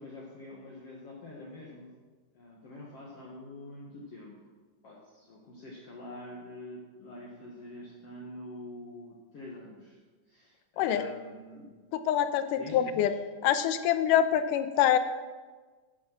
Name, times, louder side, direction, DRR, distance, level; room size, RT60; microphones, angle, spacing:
voice 1, 0.0-1.9 2.3-4.4 4.8-10.0 10.3-11.7 12.6-13.2, left 1 dB, 55° left, -4 dB, 2.4 m, -46 dB
voice 2, 12.1-13.1 13.4-15.0, left 10 dB, 85° left, 10 dB, 2.2 m, -25 dB
14.0 x 7.4 x 5.9 m, 1.4 s
omnidirectional pair, 3.8 m